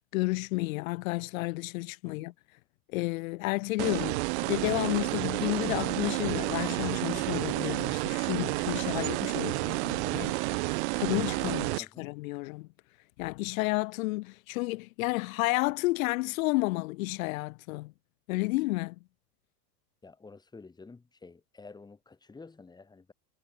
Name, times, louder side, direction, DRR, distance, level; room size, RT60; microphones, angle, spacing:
voice 1, 0.1-2.3 2.9-12.7 13.2-17.9 18.3-19.0, left 22 dB, 55° left, 2.1 m, -31 dB
sound 1, 3.8-11.8, right 28 dB, 45° right, 1.0 m, -30 dB
voice 2, 20.0-23.1, left 4 dB, 10° left, 4.3 m, -50 dB
supercardioid pair, 160°, 49 cm